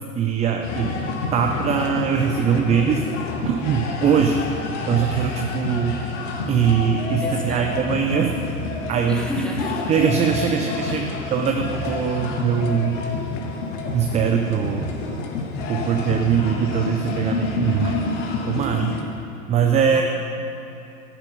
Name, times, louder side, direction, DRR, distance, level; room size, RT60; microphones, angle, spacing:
voice 1, 0.2-0.9 1.3-3.1 3.4-4.4 4.9-6.2 6.5-8.3 8.9-9.2 9.9-11.0 11.3-13.0 13.9-15.0 15.7-18.0 18.5-19.0 19.5-20.0, right 7 dB, 15° right, 4 dB, 0.5 m, -21 dB
sound 1, 0.6-19.0, left 3 dB, 55° left, 1.8 m, -28 dB
voice 2, 7.2-7.7 9.1-9.9 10.9-11.1 19.8-20.0, equal, ahead, -2 dB, 2.0 m, -31 dB
13.0 x 10.0 x 5.5 m, 2.7 s
figure-of-eight pair, 95°, 44 cm